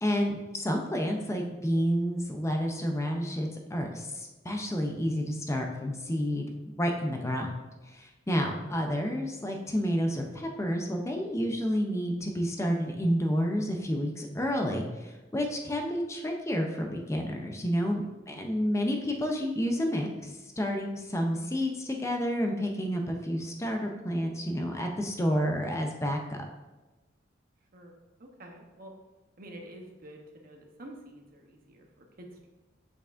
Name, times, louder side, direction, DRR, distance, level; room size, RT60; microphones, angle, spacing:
voice 1, 0.0-6.5 6.8-7.5 7.8-26.4, equal, 15° left, 2 dB, 0.6 m, -30 dB
voice 2, 27.7-28.9 29.4-32.5, right 1 dB, 50° right, 2 dB, 0.9 m, -48 dB
6.8 x 5.8 x 2.6 m, 1.1 s
head